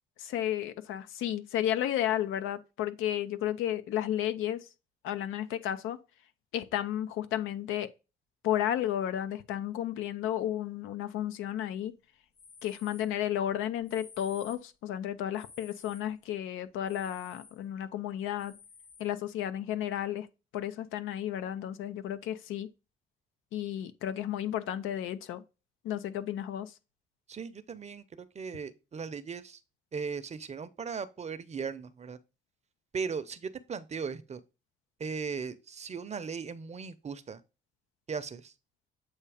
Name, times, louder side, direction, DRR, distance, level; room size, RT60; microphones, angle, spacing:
voice 1, 0.2-4.6 5.0-6.0 6.5-7.9 8.4-11.9 12.6-18.5 19.0-20.3 20.5-22.7 23.5-25.4 25.8-26.7, left 11 dB, 90° left, 0.6 m, -33 dB
sound 1, 12.3-13.1 13.8-14.7 15.3-16.1 16.9-17.6 18.4-19.1, left 5 dB, 55° left, 1.1 m, -53 dB
voice 2, 27.3-29.6 29.9-32.2 32.9-34.4 35.0-37.4 38.1-38.5, right 5 dB, 35° right, 0.6 m, -38 dB
7.9 x 2.7 x 4.9 m
cardioid pair, 90°, 20 cm